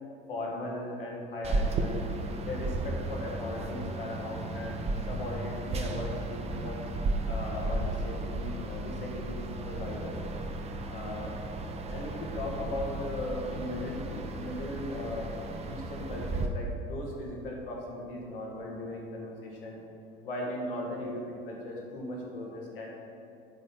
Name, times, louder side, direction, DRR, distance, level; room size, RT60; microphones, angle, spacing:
voice 1, 0.3-2.0 2.4-6.8 7.2-10.1 10.9-11.3 11.9-15.4 15.7-19.8 20.2-22.9, left 1 dB, 70° left, -2 dB, 1.6 m, -38 dB
sound 1, 1.4-16.5, right 2 dB, 20° right, 0.6 m, -34 dB
9.0 x 4.1 x 6.0 m, 2.6 s
figure-of-eight pair, 70°, 29 cm